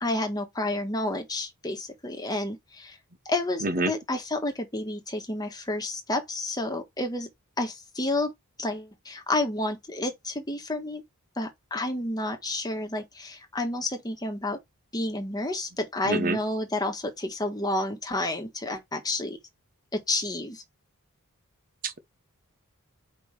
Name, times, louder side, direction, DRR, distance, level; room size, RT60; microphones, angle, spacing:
voice 1, 0.0-3.0 3.2-7.3 7.6-8.3 8.6-11.0 11.4-14.6 14.9-19.4 19.9-20.6, left 2 dB, 15° left, 1.4 m, -30 dB
voice 2, 16.1-16.4 21.8-22.0, right 2 dB, 40° right, 0.9 m, -26 dB
5.1 x 3.8 x 4.7 m
head